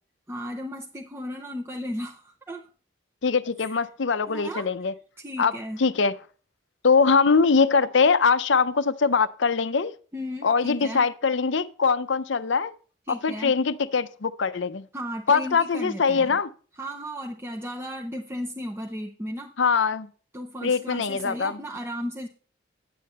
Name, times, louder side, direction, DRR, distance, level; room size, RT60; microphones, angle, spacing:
voice 1, 0.3-2.7 3.6-3.8 4.3-4.7 5.2-5.8 10.1-11.1 13.1-13.5 14.9-16.4 16.8-19.5 20.3-22.3, equal, 10° right, 0.7 m, -35 dB
voice 2, 3.2-4.9 5.4-5.5 5.8-6.1 6.8-9.9 10.4-12.7 13.1-14.9 15.3-16.5 19.6-20.1 20.6-21.6, left 5 dB, 65° left, 0.6 m, -22 dB
10.0 x 8.5 x 4.2 m
head